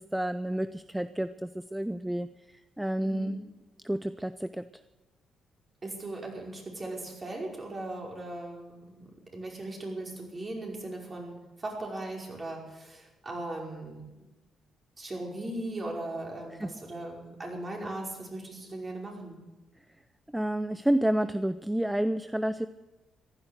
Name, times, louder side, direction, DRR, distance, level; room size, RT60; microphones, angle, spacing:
voice 1, 0.0-2.3 2.8-3.4 3.8-4.6 16.6-16.7 20.3-22.7, right 1 dB, 5° right, 13 dB, 0.5 m, -29 dB
voice 2, 3.0-3.3 5.8-14.1 15.0-19.4, right 2 dB, 30° right, -1 dB, 5.4 m, -38 dB
15.0 x 12.0 x 8.0 m, 1.1 s
cardioid pair, 90°, 0 cm